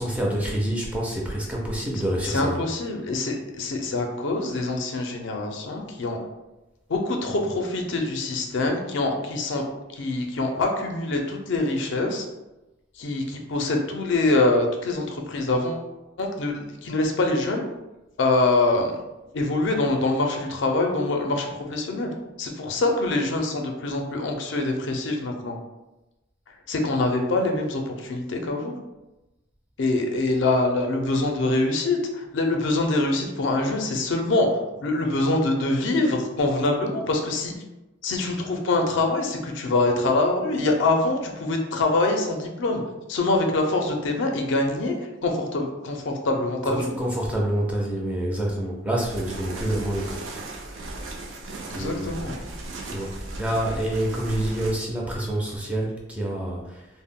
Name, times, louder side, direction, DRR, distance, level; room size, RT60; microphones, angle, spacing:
voice 1, 0.0-2.6 46.6-50.2 51.7-52.2 52.8-56.9, right 1 dB, 5° right, -3 dB, 0.4 m, -27 dB
voice 2, 2.2-6.2 6.9-9.6 10.0-12.3 13.0-15.9 16.2-17.6 18.2-19.0 19.3-22.1 22.4-25.6 26.7-28.8 29.8-37.6 38.0-42.8 43.1-44.9 45.2-46.9 51.7-52.4, left 2 dB, 60° left, 3 dB, 0.4 m, -24 dB
sound 1, 49.0-54.7, right 2 dB, 80° right, 0.4 m, -36 dB
2.1 x 2.0 x 3.5 m, 1.0 s
head